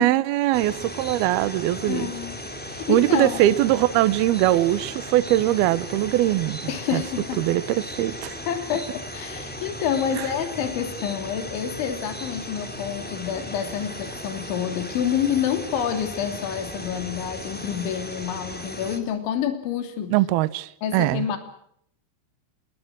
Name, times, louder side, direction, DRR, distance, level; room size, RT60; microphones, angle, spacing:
voice 1, 0.0-2.1 2.9-7.0 7.4-8.3 10.1-10.2 20.1-21.3, right 15 dB, 85° right, 16 dB, 2.2 m, -21 dB
sound 1, 0.5-19.0, left 1 dB, 5° left, 1.5 m, -36 dB
voice 2, 1.8-3.4 6.7-7.4 8.5-20.1 20.8-21.4, left 9 dB, 65° left, 7 dB, 5.1 m, -28 dB
27.5 x 22.0 x 6.3 m, 0.69 s
omnidirectional pair, 6.0 m